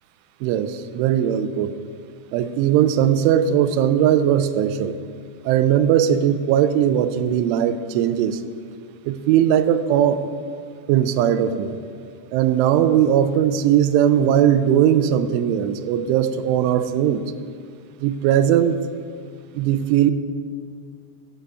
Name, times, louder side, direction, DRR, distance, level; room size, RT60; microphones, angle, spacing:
voice 1, 0.4-1.7 2.3-5.0 5.5-8.4 9.1-10.2 10.9-11.8 12.3-17.3 18.0-18.8 19.6-20.1, right 10 dB, 90° right, 12 dB, 3.1 m, -19 dB
15.5 x 7.9 x 4.7 m, 2.1 s
omnidirectional pair, 5.4 m